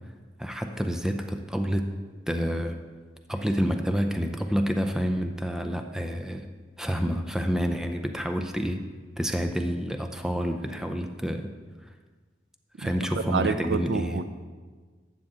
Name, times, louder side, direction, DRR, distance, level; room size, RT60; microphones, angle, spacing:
voice 1, 0.4-1.9 2.3-2.8 3.3-6.5 6.8-8.8 9.2-11.5 12.8-14.2, equal, 5° right, 6 dB, 0.4 m, -28 dB
voice 2, 12.8-14.2, right 4 dB, 80° right, 11 dB, 0.5 m, -28 dB
12.0 x 7.5 x 3.7 m, 1.5 s
head